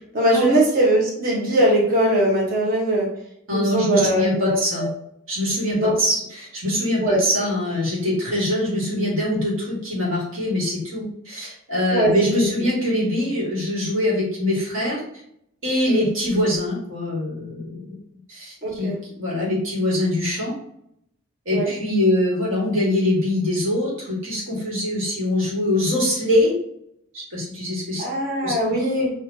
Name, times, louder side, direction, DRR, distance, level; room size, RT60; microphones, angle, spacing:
voice 1, 0.1-3.1 3.5-4.9 5.8-6.0 7.0-7.2 11.9-12.1 15.9-16.1 18.6-19.0 21.5-21.7 28.0-29.1, right 1 dB, 45° right, -3 dB, 1.3 m, -20 dB
voice 2, 3.5-4.9 5.3-15.0 15.6-18.0 18.3-20.5 21.5-26.5 27.1-28.0 28.4-28.5, left 1 dB, 75° right, -5 dB, 1.9 m, -23 dB
6.6 x 2.8 x 2.8 m, 0.72 s
head